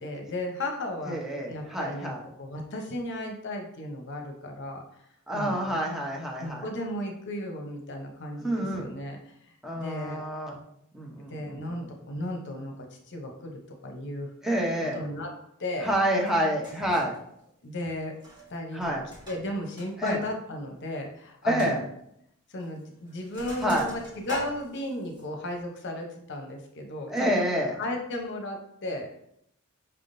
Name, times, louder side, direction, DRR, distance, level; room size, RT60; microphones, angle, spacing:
voice 1, 0.0-1.2 1.5-4.8 5.3-5.8 6.4-9.4 9.7-10.2 11.3-12.7 13.1-14.3 14.9-15.3 15.6-15.9 17.6-18.1 18.5-19.0 19.3-21.9 22.5-27.3 27.8-29.2, left 1 dB, 55° left, 2 dB, 0.8 m, -35 dB
voice 2, 1.1-2.2 5.3-6.6 8.4-8.9 9.6-10.6 10.9-11.9 14.4-15.0 15.8-17.1 18.7-19.0 20.0-20.2 21.5-21.8 23.6-23.9 27.1-27.7, equal, ahead, -3 dB, 0.8 m, -28 dB
Sink (filling or washing), 16.3-16.4 16.6-17.2 18.1-18.5 18.8-20.2 20.5-20.6 21.0-21.1 21.6-21.7 22.6-22.8 23.1-25.2, right 1 dB, 20° right, 1.2 m, -43 dB
5.6 x 3.6 x 2.6 m, 0.75 s
head